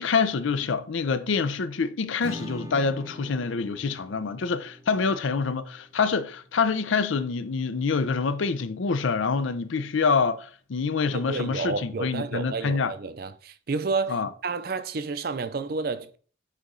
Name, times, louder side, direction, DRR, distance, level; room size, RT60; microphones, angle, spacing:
voice 1, 0.0-12.9 14.1-14.3, left 5 dB, 75° left, 0.5 m, -26 dB
Acoustic guitar / Strum, 2.2-7.7, equal, 20° right, 0.7 m, -44 dB
voice 2, 11.1-16.2, right 4 dB, 50° right, 0.5 m, -30 dB
8.2 x 3.0 x 3.8 m
head